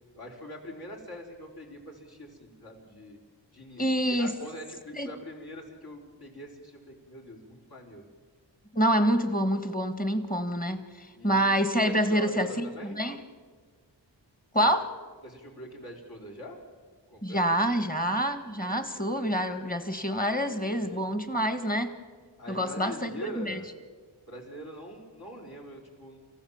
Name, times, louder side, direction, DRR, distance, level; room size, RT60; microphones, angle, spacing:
voice 1, 0.1-3.2 3.5-8.0 11.1-11.5 11.9-13.0 15.2-16.6 17.1-17.4 18.6-19.2 20.6-21.1 22.4-23.6 24.3-26.2, equal, 60° left, -1 dB, 4.6 m, -44 dB
voice 2, 3.8-4.3 4.9-5.1 8.7-13.2 14.5-14.9 17.2-21.9 22.5-23.6, equal, 20° left, 9 dB, 1.8 m, -27 dB
28.5 x 15.5 x 7.3 m, 1.5 s
wide cardioid pair, 70°, 43 cm